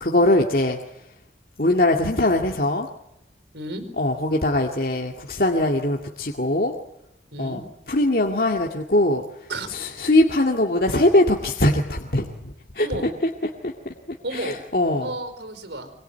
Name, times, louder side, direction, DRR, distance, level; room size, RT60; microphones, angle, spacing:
voice 1, 0.0-0.8 1.6-2.9 4.0-6.8 7.4-7.6 7.9-9.2 9.7-12.9 13.6-13.7 14.3-15.1, left 1 dB, 55° left, 1 dB, 2.1 m, -21 dB
voice 2, 3.5-3.9 7.3-7.6 9.5-9.7 12.8-13.1 14.2-14.6 15.0-15.9, right 2 dB, 80° right, 10 dB, 5.0 m, -32 dB
25.5 x 22.5 x 9.2 m, 0.82 s
head